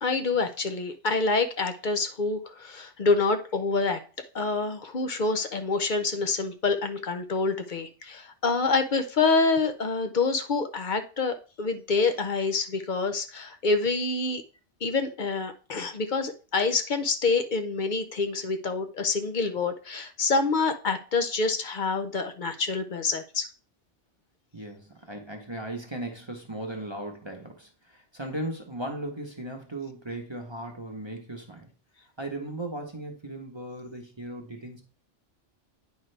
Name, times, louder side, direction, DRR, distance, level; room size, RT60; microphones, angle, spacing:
voice 1, 0.0-4.0 4.3-14.4 14.8-23.5, left 4 dB, 50° left, 8 dB, 0.7 m, -27 dB
voice 2, 24.5-31.7 32.2-34.8, right 1 dB, 25° right, 2 dB, 0.9 m, -37 dB
9.3 x 5.0 x 3.3 m, 0.36 s
omnidirectional pair, 1.2 m